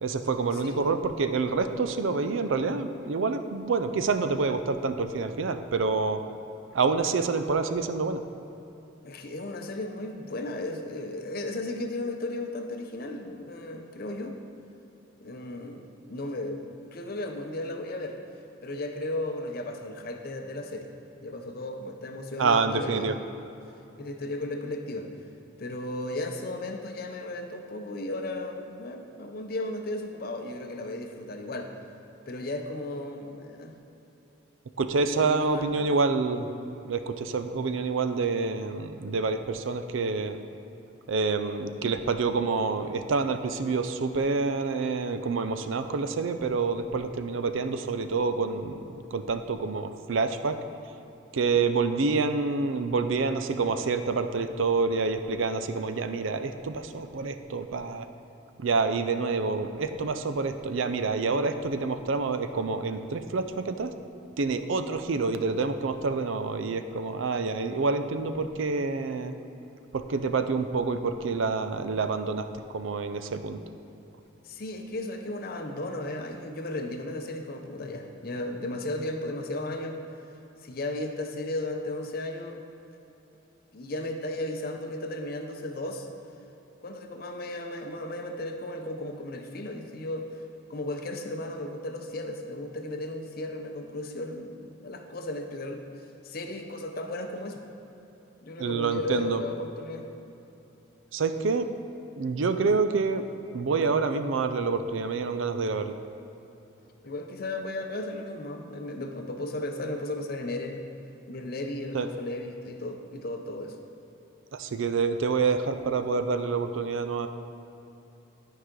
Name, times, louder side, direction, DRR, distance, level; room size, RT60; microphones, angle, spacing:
voice 1, 0.0-6.2 6.7-8.2 22.4-23.1 34.8-40.4 41.1-48.8 49.1-50.6 51.3-58.1 58.6-63.9 64.4-69.3 69.9-73.6 98.6-99.4 101.1-101.7 102.2-103.2 103.5-105.9 111.9-112.1 114.5-117.3, right 4 dB, 75° right, 9 dB, 0.5 m, -27 dB
voice 2, 9.0-14.4 15.2-18.2 18.6-20.9 21.2-23.2 24.0-25.1 25.6-31.7 32.3-33.8 35.1-35.8 74.4-80.0 80.6-82.6 83.7-86.1 86.8-90.3 90.7-95.8 96.2-97.6 98.4-100.1 107.0-110.8 111.3-113.7, left 1 dB, 50° left, 5 dB, 0.6 m, -35 dB
12.0 x 4.8 x 3.8 m, 3.0 s
head